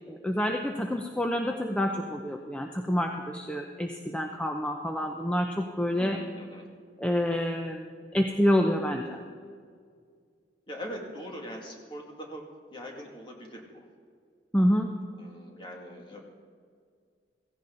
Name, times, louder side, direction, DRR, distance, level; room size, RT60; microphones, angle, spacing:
voice 1, 0.1-6.2 7.0-7.9 8.1-9.2 14.5-14.9, equal, 5° left, 2 dB, 0.7 m, -27 dB
voice 2, 6.0-6.7 10.7-12.4 12.7-13.8 15.2-16.2, equal, 25° left, 0 dB, 2.3 m, -41 dB
16.5 x 16.0 x 3.9 m, 2.1 s
head